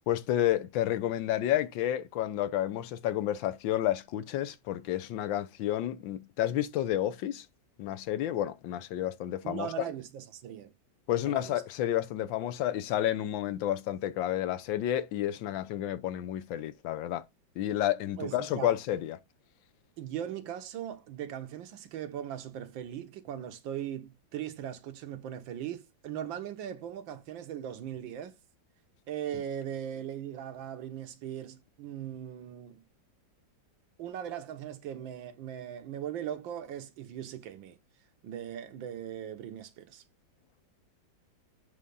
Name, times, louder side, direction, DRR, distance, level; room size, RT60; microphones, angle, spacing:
voice 1, 0.1-7.5 7.8-9.7 11.1-17.2 17.6-19.2, left 12 dB, 80° left, 1.4 m, -30 dB
voice 2, 9.4-10.7 11.2-11.5 18.2-18.7 20.0-28.4 29.1-32.8 34.0-37.8 38.2-40.0, right 10 dB, 80° right, 1.7 m, -39 dB
8.1 x 3.6 x 5.3 m
omnidirectional pair, 2.1 m